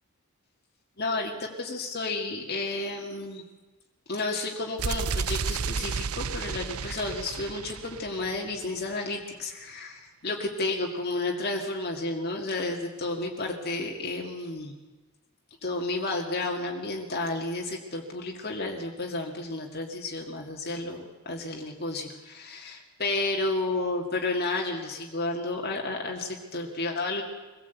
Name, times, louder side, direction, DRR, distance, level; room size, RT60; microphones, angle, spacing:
voice 1, 1.0-3.4 4.1-14.7 15.6-27.2, left 2 dB, 45° left, 0 dB, 2.1 m, -32 dB
sound 1, 4.8-8.7, right 5 dB, 80° right, 0.7 m, -32 dB
23.5 x 17.0 x 8.2 m, 1.3 s
head